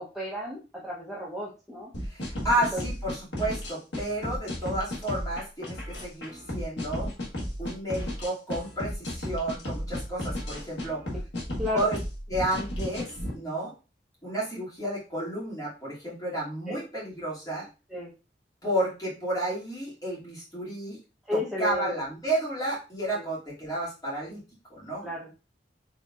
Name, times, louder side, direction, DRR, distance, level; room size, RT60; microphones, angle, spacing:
voice 1, 0.0-1.9 2.7-2.8 11.6-11.9 16.7-16.8 17.9-18.1 21.3-21.9 23.1-23.2 25.0-25.3, left 1 dB, 5° right, -6 dB, 0.8 m, -33 dB
sound 1, 1.9-13.3, equal, 80° left, 1.2 m, -34 dB
voice 2, 2.0-7.1 7.6-11.0 11.7-12.0 12.3-13.7 14.2-17.7 18.6-21.0 21.6-24.4 24.7-25.0, right 1 dB, 20° left, -7 dB, 2.3 m, -31 dB
4.4 x 3.6 x 2.4 m, 0.31 s
head